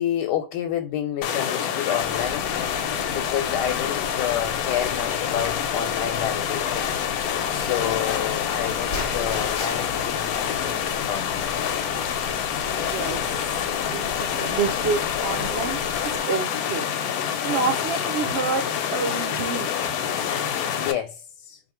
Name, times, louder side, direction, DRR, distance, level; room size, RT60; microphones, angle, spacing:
voice 1, 0.0-2.5 3.1-6.9 7.5-11.5 12.6-12.8 20.8-21.6, left 10 dB, 85° left, 1.2 m, -29 dB
sound 1, 1.2-20.9, left 8 dB, 70° left, 0.9 m, -27 dB
sound 2, 2.0-16.2, left 1 dB, 55° left, 0.5 m, -40 dB
voice 2, 12.7-16.9 17.1-19.9, right 5 dB, 70° right, 0.6 m, -29 dB
2.7 x 2.6 x 4.2 m
omnidirectional pair, 1.8 m